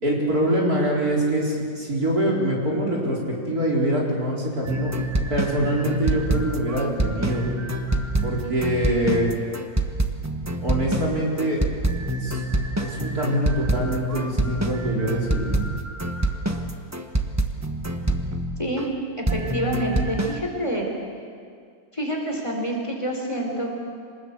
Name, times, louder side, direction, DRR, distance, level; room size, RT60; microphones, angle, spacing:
voice 1, 0.0-4.9 5.3-7.5 8.2-9.3 10.6-11.6 12.1-12.4 12.8-15.5, right 1 dB, 50° right, -3 dB, 5.0 m, -24 dB
sound 1, 4.6-18.9 19.3-20.4, right 1 dB, 10° right, 1.0 m, -26 dB
voice 2, 19.3-20.9 21.9-23.8, equal, 15° left, 0 dB, 3.9 m, -27 dB
26.5 x 20.0 x 8.2 m, 2.2 s
omnidirectional pair, 2.0 m